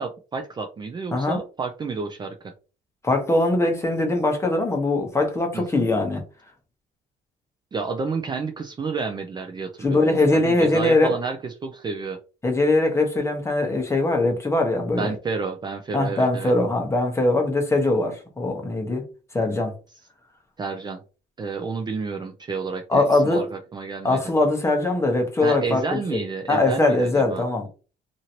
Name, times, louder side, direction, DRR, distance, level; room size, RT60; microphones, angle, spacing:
voice 1, 0.0-2.5 5.5-5.9 7.7-12.2 15.0-16.5 20.6-21.0 21.4-24.2 25.4-27.4, right 4 dB, 25° right, 0.4 m, -30 dB
voice 2, 3.0-6.2 9.8-11.1 12.4-15.1 15.9-19.0 19.3-19.7 22.9-23.4 24.0-26.2 26.5-27.7, left 2 dB, 15° left, 0.9 m, -21 dB
2.9 x 2.6 x 2.9 m
cardioid pair, 110°, 17 cm